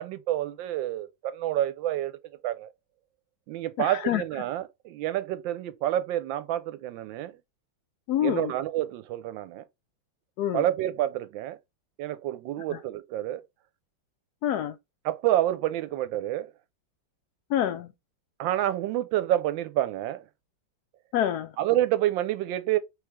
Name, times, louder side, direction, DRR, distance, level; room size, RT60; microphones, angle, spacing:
voice 1, 0.0-2.1 2.4-2.7 3.5-7.3 8.2-9.6 10.5-11.6 12.0-13.4 15.0-16.5 18.4-20.2 21.6-22.8, right 13 dB, 75° right, 1.3 m, -28 dB
voice 2, 3.8-4.2 8.1-8.5 10.4-10.6 14.4-14.7 17.5-17.9 21.1-21.5, left 11 dB, 85° left, 0.8 m, -26 dB
3.4 x 3.3 x 4.7 m
omnidirectional pair, 2.2 m